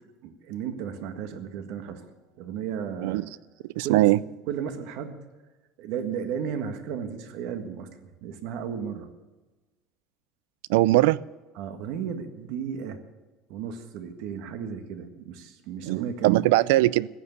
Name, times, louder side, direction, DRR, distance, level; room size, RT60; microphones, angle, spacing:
voice 1, 0.2-2.0 2.4-3.3 3.8-4.0 4.5-5.2 5.8-7.9 8.2-9.1 11.6-13.0 13.5-16.3, right 7 dB, 55° right, 1.7 m, -34 dB
voice 2, 3.8-4.2 10.7-11.2 15.8-17.1, right 17 dB, 85° right, 0.4 m, -20 dB
15.0 x 9.6 x 8.2 m
cardioid pair, 175°, 0 cm